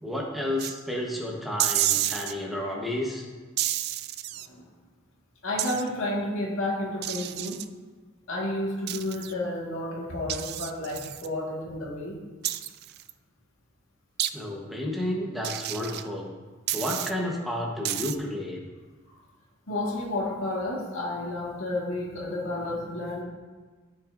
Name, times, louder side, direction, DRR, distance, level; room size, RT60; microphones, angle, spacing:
voice 1, 0.0-3.2 14.3-16.3 16.7-18.6, left 1 dB, ahead, -2 dB, 1.1 m, -31 dB
sound 1, 0.6-0.7 1.6-2.3 3.6-4.5 5.6-5.9 7.0-7.6 8.9-9.3 10.3-11.3 12.4-13.1 14.2-14.3 15.4-16.1 16.7-17.1 17.8-18.2, right 13 dB, 50° right, 0.3 m, -30 dB
voice 2, 5.4-7.6 8.3-12.2 19.1-19.2 19.7-23.2, left 1 dB, 80° left, -3 dB, 1.8 m, -31 dB
13.5 x 5.9 x 2.6 m, 1.3 s
head